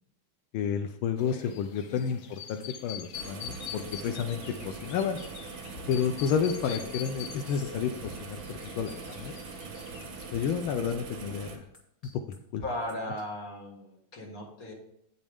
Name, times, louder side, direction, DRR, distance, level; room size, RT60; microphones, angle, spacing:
voice 1, 0.5-5.2 5.9-9.3 10.3-11.6 12.3-12.6, left 7 dB, 85° left, 5 dB, 1.5 m, -31 dB
sound 1, 1.2-10.6, left 10 dB, 65° left, 1.2 m, -45 dB
sound 2, 2.1-9.2 9.5-13.2, left 1 dB, 20° left, 1.1 m, -50 dB
sound 3, 3.1-11.6, right 4 dB, 75° right, 2.1 m, -42 dB
voice 2, 12.6-14.7, left 1 dB, 45° left, 0 dB, 2.3 m, -37 dB
8.8 x 8.7 x 3.5 m, 0.76 s
omnidirectional pair, 2.2 m